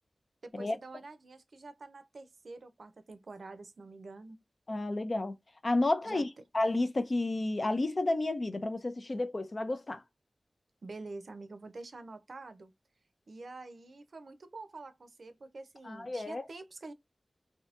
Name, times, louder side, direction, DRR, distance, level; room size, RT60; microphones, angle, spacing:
voice 1, 0.4-4.4 6.0-6.3 10.8-12.7 13.3-16.9, right 3 dB, 75° right, 0.5 m, -47 dB
voice 2, 4.7-5.3 5.6-6.3 6.5-10.0 15.8-16.4, left 2 dB, 50° left, 0.5 m, -31 dB
3.4 x 2.7 x 2.4 m
wide cardioid pair, 65°, 0 cm